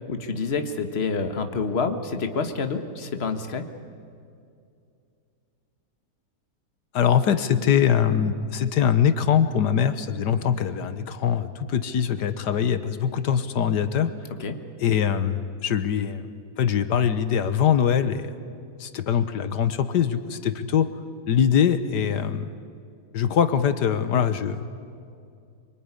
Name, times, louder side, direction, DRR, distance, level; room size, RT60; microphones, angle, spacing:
voice 1, 0.1-3.7 14.4-14.6, left 4 dB, 40° left, 7 dB, 1.7 m, -28 dB
voice 2, 6.9-14.1 14.8-16.2 16.6-18.3 18.8-20.9 21.3-22.5 23.1-24.6, left 8 dB, 90° left, 11 dB, 1.7 m, -22 dB
25.0 x 24.5 x 9.8 m, 2.4 s
omnidirectional pair, 1.8 m